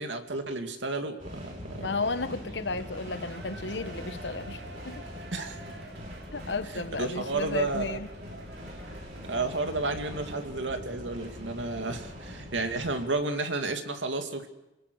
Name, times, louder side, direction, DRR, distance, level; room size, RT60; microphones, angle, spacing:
voice 1, 0.0-1.9 5.3-5.6 7.0-8.0 9.3-14.5, right 3 dB, 85° right, 6 dB, 2.5 m, -32 dB
sound 1, 1.2-13.1, equal, 45° right, 7.8 m, -42 dB
voice 2, 1.8-5.1 6.3-8.1, left 3 dB, 70° left, 12 dB, 1.3 m, -33 dB
Shout / Cheering, 2.4-10.8 11.2-11.3, right 2 dB, 60° right, 3.3 m, -49 dB
29.0 x 19.5 x 6.5 m, 0.95 s
head